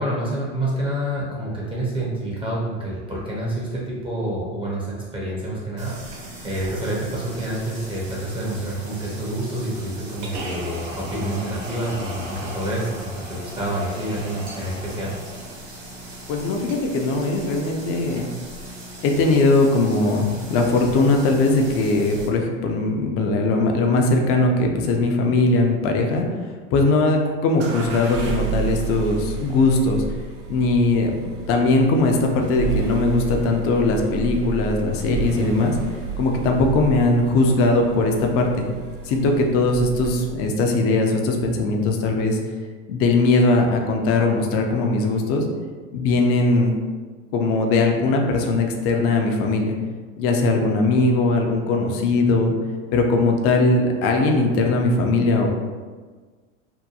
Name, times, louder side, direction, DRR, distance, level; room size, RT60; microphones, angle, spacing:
voice 1, 0.0-15.1, right 1 dB, 15° right, -6 dB, 0.5 m, -28 dB
sound 1, 5.8-22.3, right 1 dB, 65° right, 1.1 m, -37 dB
voice 2, 16.3-18.3 19.0-26.3 26.7-30.0 30.5-31.2 31.5-35.8 36.2-38.7 39.0-42.4 42.9-45.5 45.9-46.7 47.3-49.7 50.2-52.5 52.9-55.5, left 2 dB, 40° left, 2 dB, 0.4 m, -20 dB
Starting Engine Car, 27.6-40.4, right 5 dB, 80° right, 0.6 m, -31 dB
2.8 x 2.1 x 2.3 m, 1.4 s
hypercardioid pair, 100°, 36 cm